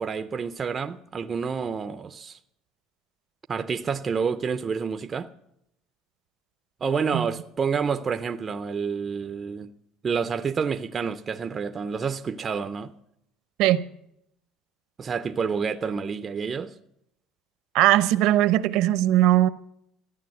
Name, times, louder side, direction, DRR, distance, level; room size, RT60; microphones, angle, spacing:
voice 1, 0.0-2.4 3.5-5.3 6.8-9.7 10.0-12.9 15.0-16.7, right 6 dB, 20° right, 0.5 m, -28 dB
voice 2, 17.7-19.5, right 14 dB, 60° right, 0.7 m, -19 dB
14.5 x 9.8 x 7.6 m
cardioid pair, 180°, 0 cm